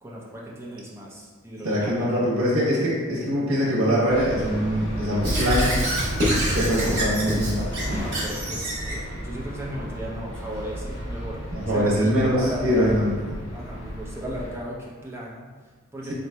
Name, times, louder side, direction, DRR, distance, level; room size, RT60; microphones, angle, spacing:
voice 1, 0.0-2.3 6.5-7.0 7.8-13.0 13.5-16.1, right 1 dB, 10° right, -5 dB, 0.6 m, -36 dB
voice 2, 1.6-5.7 6.5-8.0 11.5-13.1, equal, 75° right, -7 dB, 1.0 m, -23 dB
sound 1, 4.1-14.6, equal, 70° left, 1.1 m, -34 dB
Squeak / Writing, 5.2-9.0, right 1 dB, 55° right, 1.2 m, -26 dB
4.2 x 3.8 x 2.2 m, 1.4 s
head